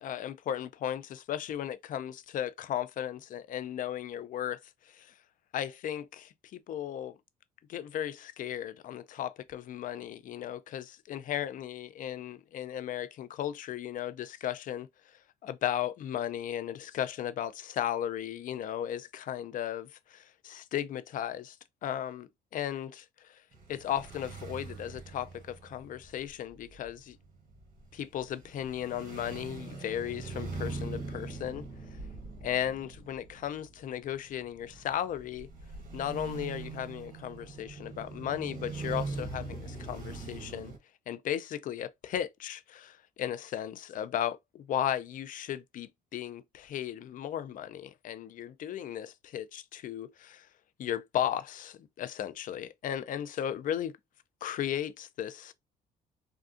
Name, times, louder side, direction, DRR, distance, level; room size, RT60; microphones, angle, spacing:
voice 1, 0.0-4.6 4.9-5.1 5.5-7.2 7.7-14.9 15.4-21.6 21.8-23.4 23.7-27.2 27.9-31.6 32.4-35.5 35.9-40.7 41.1-50.5 50.8-54.0 54.4-55.5, left 10 dB, 50° left, 0.5 m, -36 dB
sound 1, 23.5-40.8, right 4 dB, 55° right, 1.4 m, -42 dB
3.6 x 2.3 x 2.4 m
cardioid pair, 110°, 17 cm